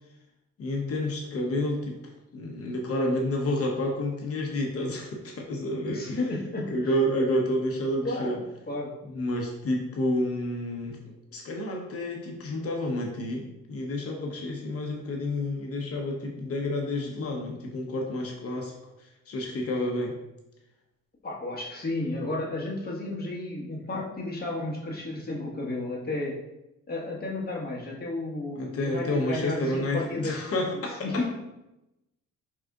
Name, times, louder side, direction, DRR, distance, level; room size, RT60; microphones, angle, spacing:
voice 1, 0.6-2.0 2.3-6.3 6.7-8.4 9.1-18.7 19.0-20.2 28.6-31.2, left 1 dB, 50° left, 1 dB, 0.8 m, -30 dB
voice 2, 5.7-6.7 8.0-8.9 21.2-26.4 26.9-30.4 31.0-31.3, left 2 dB, 30° left, -4 dB, 1.4 m, -32 dB
4.7 x 3.7 x 2.3 m, 0.91 s
cardioid pair, 90°, 30 cm